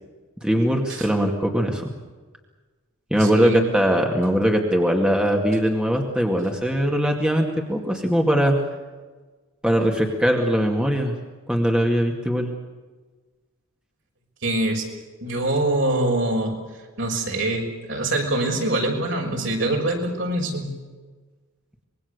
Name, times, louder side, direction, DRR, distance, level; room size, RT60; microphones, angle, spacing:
voice 1, 0.4-1.9 3.1-8.5 9.6-11.1 11.5-12.5, equal, 5° right, 1 dB, 2.2 m, -21 dB
voice 2, 3.2-3.6 14.4-14.8 15.2-16.6 17.0-20.7, right 1 dB, 65° right, 1 dB, 6.1 m, -24 dB
25.5 x 22.0 x 6.9 m, 1.3 s
head